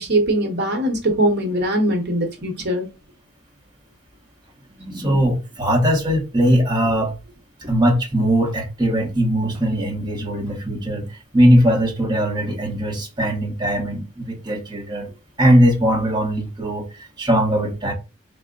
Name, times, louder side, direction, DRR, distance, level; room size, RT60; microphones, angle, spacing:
voice 1, 0.0-2.9, right 1 dB, 55° right, 1.0 m, -21 dB
voice 2, 4.8-7.1 7.6-11.1 11.3-15.1 15.4-17.9, equal, 20° right, 1.0 m, -20 dB
4.3 x 2.0 x 3.7 m
head